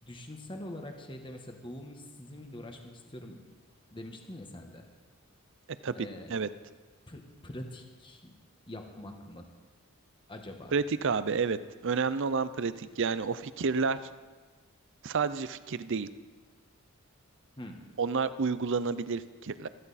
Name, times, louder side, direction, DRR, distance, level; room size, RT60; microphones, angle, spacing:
voice 1, 0.0-3.4 3.9-4.9 5.9-6.3 7.1-8.4 8.7-9.5 10.3-10.7 17.6-17.8, left 1 dB, 25° left, 4 dB, 1.3 m, -44 dB
voice 2, 10.7-11.6 11.8-14.0 15.0-16.1 18.0-19.7, right 5 dB, 55° right, 14 dB, 0.5 m, -30 dB
16.0 x 14.0 x 4.2 m, 1.4 s
head